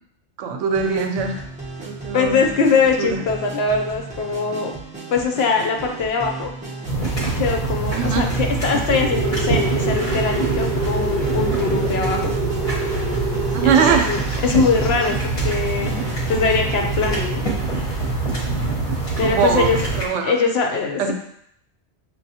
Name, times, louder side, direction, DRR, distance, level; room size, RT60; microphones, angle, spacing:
voice 1, 0.4-1.3 1.8-2.5 2.7-3.2 8.0-8.3 13.5-14.1 19.2-20.3 21.0-21.1, right 6 dB, 80° right, 4 dB, 0.9 m, -21 dB
sound 1, 0.7-17.3, right 2 dB, 10° right, 0.5 m, -36 dB
voice 2, 2.1-4.7 5.1-6.5 7.4-12.3 13.6-16.0 16.3-17.4 19.2-19.8 20.2-21.1, left 5 dB, 65° left, 2 dB, 0.8 m, -22 dB
sound 2, 6.9-20.1, right 3 dB, 35° left, 0.8 m, -24 dB
sound 3, 8.9-13.9, right 4 dB, 45° right, 0.7 m, -27 dB
6.2 x 2.2 x 2.7 m, 0.71 s
omnidirectional pair, 1.2 m